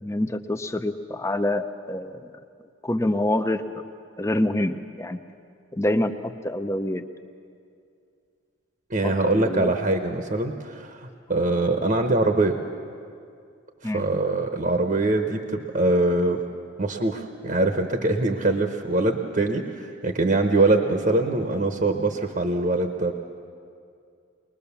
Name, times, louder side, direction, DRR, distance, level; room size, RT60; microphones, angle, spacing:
voice 1, 0.0-2.3 2.8-3.8 4.2-5.2 5.7-7.0 9.0-9.7 13.8-14.1, left 1 dB, 15° left, 9 dB, 0.7 m, -26 dB
voice 2, 8.9-12.6 13.8-16.4 16.8-23.1, right 2 dB, 40° right, 5 dB, 1.0 m, -23 dB
22.0 x 20.5 x 7.1 m, 2.4 s
head